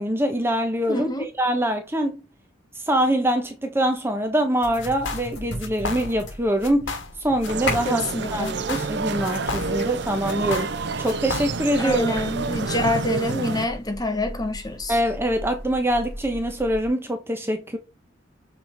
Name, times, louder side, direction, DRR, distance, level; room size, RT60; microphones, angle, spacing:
voice 1, 0.0-2.2 2.9-8.0 8.3-12.1 14.9-17.8, right 1 dB, 10° right, 0.9 m, -24 dB
voice 2, 0.9-1.2 7.8-8.6 11.8-14.9, left 2 dB, 20° left, 1.3 m, -26 dB
sound 1, 4.6-16.9, left 1 dB, 65° left, 4.3 m, -38 dB
sound 2, 4.8-5.3 5.6-6.3 6.6-7.2 7.4-8.2 8.4-10.0 10.3-11.8, left 3 dB, 80° left, 1.6 m, -32 dB
sound 3, 7.5-13.7, right 4 dB, 65° right, 0.7 m, -29 dB
7.1 x 4.5 x 3.9 m
head